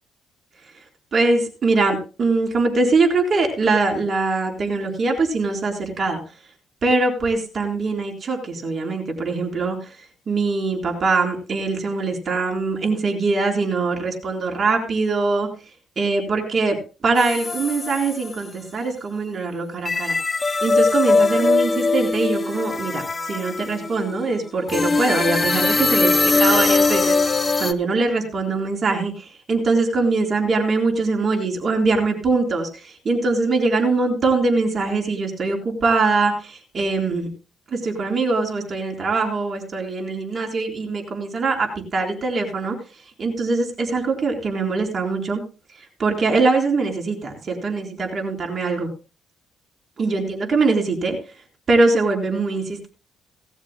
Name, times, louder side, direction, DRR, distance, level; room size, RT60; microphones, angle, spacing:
voice 1, 1.1-6.2 6.8-15.5 16.0-16.8 17.0-20.2 20.6-37.3 37.7-42.8 43.2-45.4 45.7-48.9 50.0-51.2 51.7-52.9, right 3 dB, 35° right, 1 dB, 4.0 m, -22 dB
sound 1, 17.2-18.4 19.8-27.7, left 3 dB, 20° left, 0.9 m, -21 dB
18.5 x 13.5 x 2.2 m, 0.33 s
cardioid pair, 125°, 0 cm